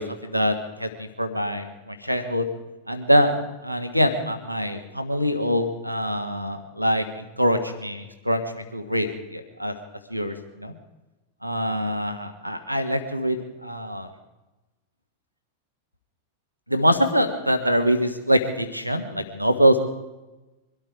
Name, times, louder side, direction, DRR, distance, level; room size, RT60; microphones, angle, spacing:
voice 1, 0.0-2.4 2.9-3.4 3.6-9.7 10.1-10.7 11.4-14.1 16.7-19.8, equal, 90° right, 6 dB, 1.4 m, -24 dB
23.5 x 13.0 x 4.7 m, 1.1 s
figure-of-eight pair, 90°, 0 cm